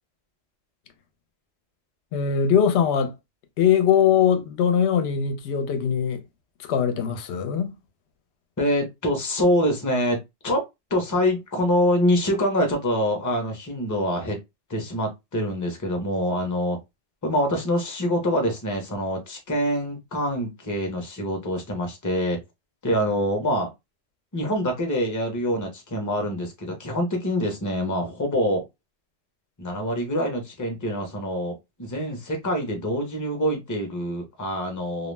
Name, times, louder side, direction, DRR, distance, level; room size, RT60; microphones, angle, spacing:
voice 1, 2.1-3.1 3.6-6.2 6.7-7.7, left 8 dB, 65° left, 0.8 m, -21 dB
voice 2, 8.6-14.4 14.7-16.8 17.2-22.4 22.8-23.7 24.3-28.7 29.6-35.1, equal, 20° left, 0.5 m, -25 dB
2.3 x 2.0 x 3.2 m
omnidirectional pair, 1.3 m